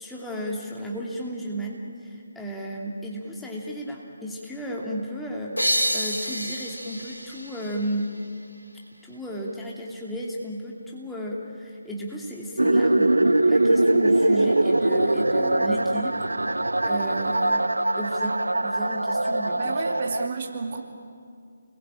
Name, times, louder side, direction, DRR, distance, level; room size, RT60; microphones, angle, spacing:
voice 1, 0.0-8.1 9.0-16.5 16.8-19.8, equal, 5° left, -3 dB, 2.6 m, -34 dB
sound 1, 5.6-9.0, equal, 90° left, 3.9 m, -29 dB
sound 2, 12.6-20.3, right 1 dB, 75° right, 0.8 m, -22 dB
voice 2, 19.6-20.8, right 4 dB, 40° right, 3 dB, 2.5 m, -31 dB
29.0 x 21.0 x 9.1 m, 2.3 s
figure-of-eight pair, 145°, 0 cm